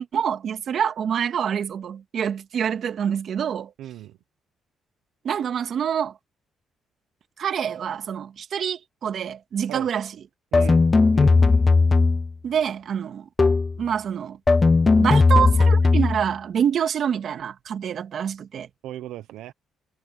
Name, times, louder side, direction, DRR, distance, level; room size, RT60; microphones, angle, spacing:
voice 1, 0.0-3.7 5.2-6.1 7.4-10.1 10.7-10.8 12.4-13.3 13.8-14.4 15.0-18.7, right 8 dB, 60° right, 2.3 m, -26 dB
voice 2, 3.8-4.1 9.7-9.9 10.5-10.9 11.1-11.6 18.8-19.5, right 13 dB, 90° right, 0.8 m, -36 dB
sound 1, 10.5-12.3 13.4-13.8 14.5-16.3, left 3 dB, 25° left, 0.5 m, -17 dB
cardioid pair, 90°, 0 cm